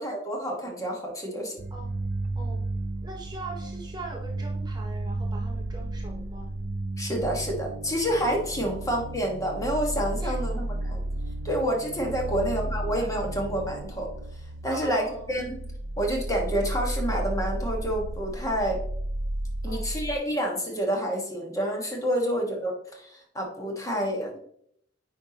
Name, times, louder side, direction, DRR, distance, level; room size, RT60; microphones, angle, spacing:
voice 1, 0.0-1.5 7.0-11.0 11.4-14.1 14.6-15.0 15.3-15.5 16.0-18.8 19.6-24.4, equal, 20° left, 1 dB, 1.4 m, -28 dB
sound 1, 1.6-20.1, right 1 dB, 60° right, 0.6 m, -33 dB
voice 2, 3.0-6.5 8.7-8.9 10.2-10.8 12.3-12.6 14.7-15.4 19.7-19.9 22.2-22.5 24.3-24.4, right 3 dB, 20° right, 1 dB, 0.7 m, -42 dB
9.3 x 4.5 x 2.8 m, 0.67 s
head